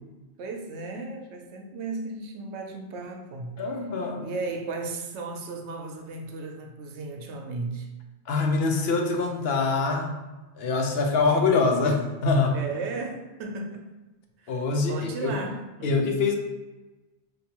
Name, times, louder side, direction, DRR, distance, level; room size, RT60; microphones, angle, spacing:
voice 1, 0.4-3.6 4.2-7.9 12.5-13.9 14.4-14.5 14.9-15.9, right 3 dB, 80° right, 4 dB, 0.9 m, -35 dB
voice 2, 3.6-4.3 8.3-10.2 10.6-12.5 14.5-15.3 15.8-16.4, left 4 dB, 70° left, 3 dB, 0.8 m, -24 dB
5.3 x 2.6 x 2.8 m, 1.1 s
omnidirectional pair, 1.1 m